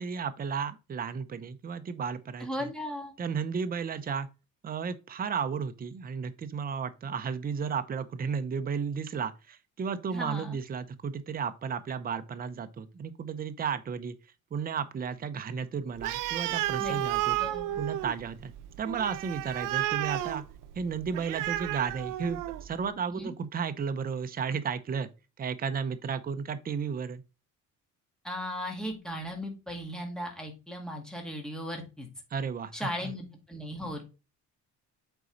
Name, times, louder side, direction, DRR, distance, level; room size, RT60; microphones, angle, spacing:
voice 1, 0.0-2.7 3.2-4.3 4.6-14.2 14.5-17.4 17.8-18.5 18.8-20.4 20.7-25.1 25.4-27.2 32.3-33.1, right 6 dB, 30° right, 0.7 m, -33 dB
voice 2, 2.4-3.1 10.1-10.6 16.8-17.0 17.4-17.8 23.1-23.3 28.2-32.1 32.7-34.0, equal, ahead, 2.1 m, -37 dB
Animal, 16.0-22.7, right 14 dB, 90° right, 0.6 m, -32 dB
8.2 x 4.0 x 4.0 m
cardioid pair, 135°, 32 cm